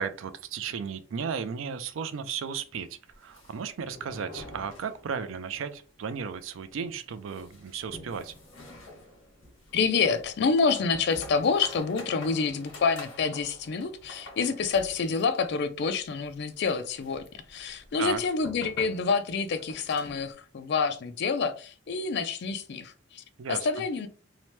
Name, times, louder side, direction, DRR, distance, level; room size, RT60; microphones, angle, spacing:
voice 1, 0.0-2.9 3.2-8.3 18.0-18.2 23.4-23.7, right 6 dB, 80° right, 0.4 m, -34 dB
sound 1, 3.1-5.5 5.7-5.8 6.1-6.2 6.7-20.3, left 1 dB, 80° left, 1.0 m, -48 dB
voice 2, 9.7-23.2 23.5-24.1, left 5 dB, 60° left, 0.4 m, -27 dB
2.8 x 2.1 x 3.1 m
head